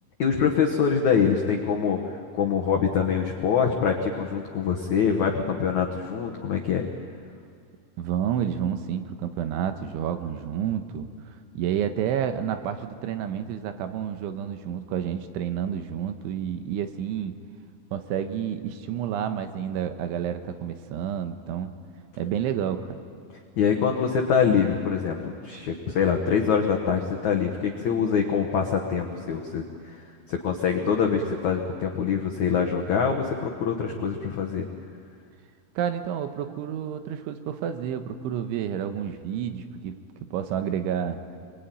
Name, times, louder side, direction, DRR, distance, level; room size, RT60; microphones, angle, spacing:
voice 1, 0.2-6.8 23.6-30.0 30.3-34.7, left 6 dB, 85° left, 2 dB, 1.6 m, -24 dB
voice 2, 8.0-11.1 11.6-17.4 17.9-21.7 22.2-23.0 35.8-40.0 40.3-41.2, right 9 dB, 80° right, 8 dB, 3.5 m, -29 dB
26.0 x 22.5 x 9.2 m, 2.2 s
omnidirectional pair, 5.6 m